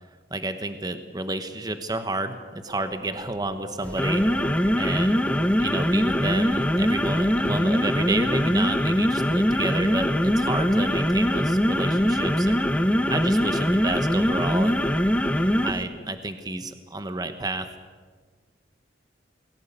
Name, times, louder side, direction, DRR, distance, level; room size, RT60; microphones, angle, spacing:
voice 1, 0.3-2.4 2.6-4.2 4.8-5.2 5.6-12.7 13.1-14.8 15.6-17.7, right 2 dB, 20° right, 9 dB, 1.1 m, -30 dB
Doorbell, 2.7-11.5, right 2 dB, 60° right, 6.6 m, -47 dB
sound 1, 3.8-15.8, equal, 5° left, 0.9 m, -22 dB
21.0 x 17.0 x 8.3 m, 1.5 s
head